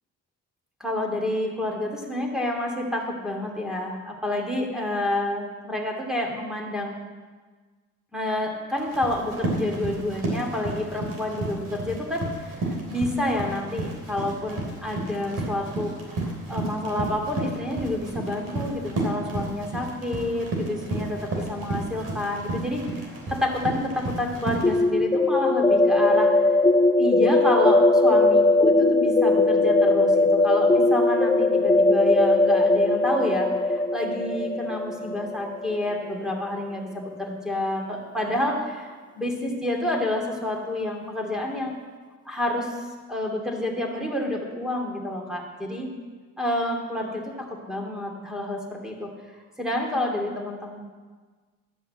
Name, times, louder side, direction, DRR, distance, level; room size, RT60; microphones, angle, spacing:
voice 1, 0.8-7.0 8.1-26.3 27.0-41.7 42.2-42.8 43.1-45.9 46.4-50.8, left 1 dB, ahead, 0 dB, 2.5 m, -29 dB
Run, 8.8-24.8, right 2 dB, 55° right, 3.5 m, -32 dB
sound 1, 24.6-36.3, left 2 dB, 15° left, 0.6 m, -20 dB
12.0 x 5.5 x 8.7 m, 1.4 s
cardioid pair, 90°, 30 cm